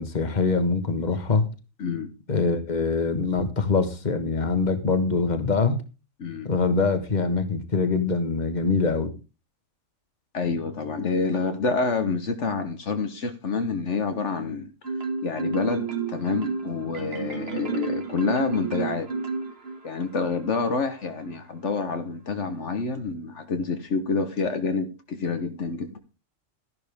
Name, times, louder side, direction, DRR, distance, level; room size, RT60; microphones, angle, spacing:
voice 1, 0.0-1.5 2.3-5.8 6.4-9.1, left 4 dB, 35° left, 9 dB, 1.6 m, -24 dB
voice 2, 1.8-2.1 6.2-6.5 10.3-14.7 15.2-19.1 19.8-26.0, left 4 dB, 65° left, 8 dB, 1.4 m, -28 dB
Marimba xylophone, 14.8-20.0, right 3 dB, 50° right, 2.4 m, -30 dB
12.5 x 11.0 x 3.6 m, 0.31 s
omnidirectional pair, 1.3 m